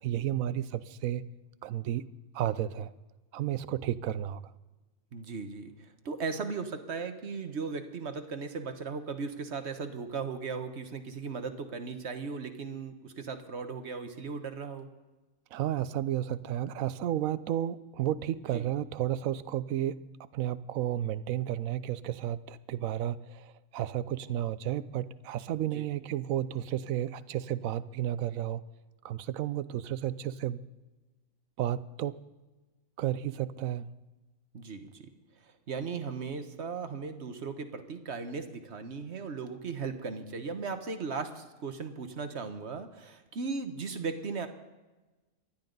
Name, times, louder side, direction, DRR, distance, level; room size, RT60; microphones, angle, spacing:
voice 1, 0.0-1.3 1.6-2.1 2.3-2.9 3.3-4.5 15.5-28.6 29.0-30.6 31.6-32.2 33.0-34.0, right 12 dB, 85° right, 16 dB, 1.1 m, -32 dB
voice 2, 5.1-14.9 18.5-18.6 25.7-25.8 34.5-35.1 35.7-44.5, right 5 dB, 55° right, 8 dB, 1.4 m, -37 dB
26.0 x 11.5 x 3.9 m, 1.2 s
omnidirectional pair, 1.4 m